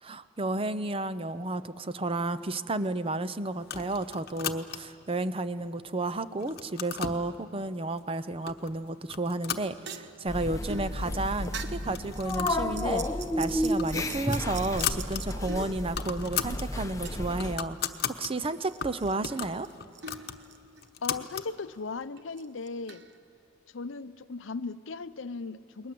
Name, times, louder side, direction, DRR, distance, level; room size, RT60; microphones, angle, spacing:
voice 1, 0.0-17.8 18.2-19.7, right 2 dB, 30° right, 14 dB, 0.6 m, -32 dB
sound 1, 3.6-5.0 5.6-6.1 6.4-7.2 8.0-8.1 8.5-8.7 9.1-10.3 10.6-10.7 11.0-11.1 11.8-12.7 13.0-13.2 13.6-15.2 15.6-15.7 15.8-16.7 17.1-18.3 18.8-21.5, left 8 dB, 55° left, 1.0 m, -36 dB
sound 2, 9.4-16.5 17.0-18.0 18.3-21.1 21.4-21.5 22.2-23.2, right 3 dB, 60° right, 1.1 m, -44 dB
sound 3, 10.3-17.6, left 1 dB, 15° left, 0.9 m, -32 dB
voice 2, 21.0-23.0 23.7-25.9, left 4 dB, 70° left, 14 dB, 0.6 m, -37 dB
29.0 x 21.0 x 7.7 m, 2.6 s
head